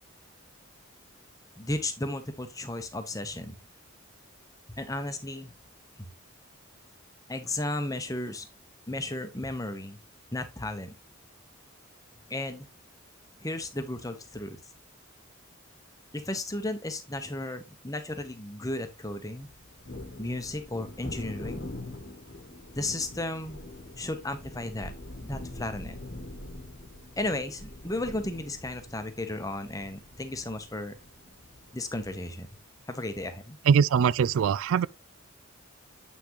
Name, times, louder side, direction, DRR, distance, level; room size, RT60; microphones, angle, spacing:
voice 1, 1.6-3.6 4.8-5.5 7.3-8.5 8.9-10.0 10.3-10.9 12.3-12.7 13.4-14.6 16.1-19.5 20.2-21.7 22.7-23.6 24.0-24.9 25.2-26.0 27.2-30.9 31.7-32.5 32.9-33.6, left 2 dB, 15° left, 1.0 m, -34 dB
Thunder, 19.4-32.6, left 1 dB, 50° left, 1.3 m, -44 dB
voice 2, 33.7-34.9, right 7 dB, 70° right, 0.3 m, -22 dB
8.3 x 5.9 x 3.1 m
head